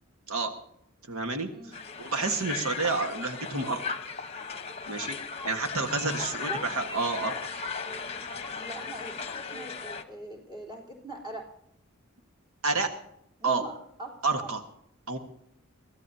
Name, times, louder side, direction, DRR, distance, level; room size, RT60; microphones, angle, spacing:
voice 1, 1.0-4.0 4.9-5.2 5.4-7.3 12.6-12.9 13.4-13.6 14.2-14.6 15.1-15.2, right 3 dB, 85° right, 4 dB, 1.5 m, -29 dB
Crowd, 1.7-10.0, left 5 dB, 30° left, 1.1 m, -37 dB
voice 2, 6.3-6.6 8.6-11.4 13.4-13.7 14.0-14.1 14.4-14.5, right 1 dB, 20° right, -2 dB, 3.6 m, -41 dB
24.0 x 15.5 x 2.8 m, 0.72 s
head